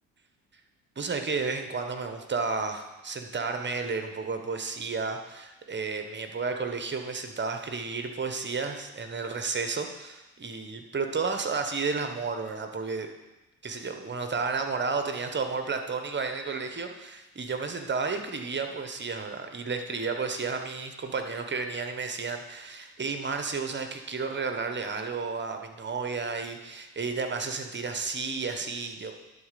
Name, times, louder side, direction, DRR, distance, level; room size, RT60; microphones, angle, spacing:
voice 1, 1.0-13.1 13.6-29.1, right 4 dB, 35° right, 6 dB, 1.2 m, -32 dB
11.0 x 4.1 x 5.2 m, 1.0 s
supercardioid pair, 60°, 34 cm